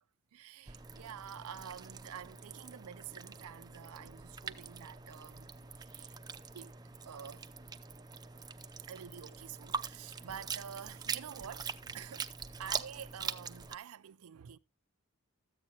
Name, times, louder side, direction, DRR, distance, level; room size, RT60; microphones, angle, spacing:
voice 1, 0.3-6.2 6.5-6.7 7.0-7.5 8.9-12.3 12.6-14.6, right 8 dB, 80° right, 0.4 m, -48 dB
sound 1, 0.7-13.8, right 5 dB, 20° right, 0.5 m, -43 dB
13.5 x 8.7 x 2.7 m
head